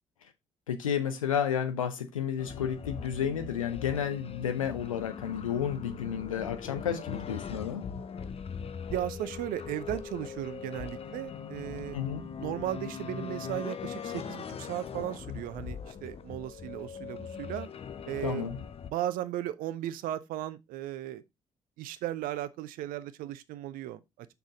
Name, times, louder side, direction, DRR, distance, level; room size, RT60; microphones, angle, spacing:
voice 1, 0.7-7.8 11.9-12.2 18.2-18.6, left 8 dB, 80° left, 0.8 m, -31 dB
sound 1, 2.4-18.9, left 7 dB, 35° left, 0.8 m, -40 dB
voice 2, 8.9-12.0 12.4-17.7 18.1-18.5 18.9-21.2 21.8-24.3, right 13 dB, 55° right, 0.7 m, -36 dB
6.8 x 6.3 x 3.7 m
figure-of-eight pair, 45°, 17 cm